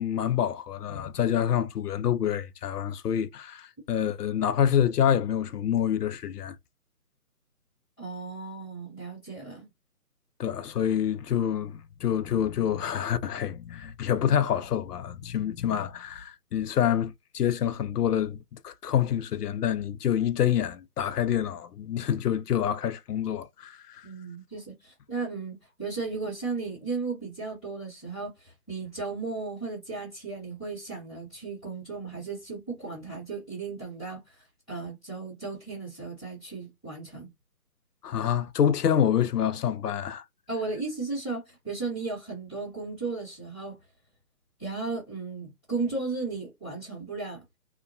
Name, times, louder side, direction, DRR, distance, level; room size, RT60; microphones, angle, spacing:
voice 1, 0.0-6.6 10.4-24.1 38.0-40.2, left 9 dB, 85° left, 0.5 m, -27 dB
voice 2, 8.0-9.7 24.0-37.3 40.5-43.8 44.6-47.4, right 4 dB, ahead, 1.2 m, -35 dB
2.8 x 2.2 x 2.5 m
hypercardioid pair, 165°, 46 cm